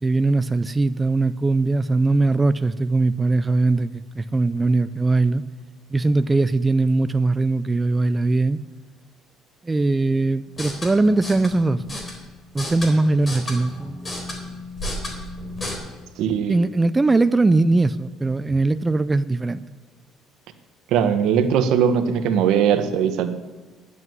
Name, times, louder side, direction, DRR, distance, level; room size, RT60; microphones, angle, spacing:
voice 1, 0.0-5.4 5.9-8.6 9.6-12.0 12.5-14.3 16.5-19.6, right 3 dB, 15° right, 12 dB, 0.4 m, -20 dB
sound 1, 10.5-15.7, left 1 dB, 30° left, 3.8 m, -33 dB
voice 2, 16.2-16.6 20.9-23.3, right 8 dB, 75° right, 8 dB, 1.2 m, -20 dB
11.0 x 8.4 x 9.5 m, 1.3 s
cardioid pair, 105°, 0 cm